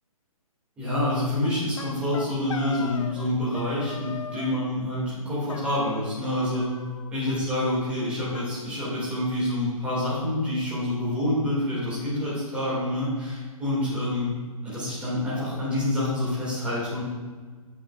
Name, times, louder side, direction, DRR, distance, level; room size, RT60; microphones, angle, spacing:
voice 1, 0.8-6.7 7.1-14.3 14.6-17.0, left 1 dB, 5° right, -10 dB, 2.1 m, -27 dB
sound 1, 1.4-3.3 3.5-4.6 5.5-6.3 6.5-7.4 7.6-7.7 8.0-8.1 8.3-9.4, left 6 dB, 60° left, 0.7 m, -40 dB
8.1 x 7.8 x 2.4 m, 1.4 s
hypercardioid pair, 170°, 19 cm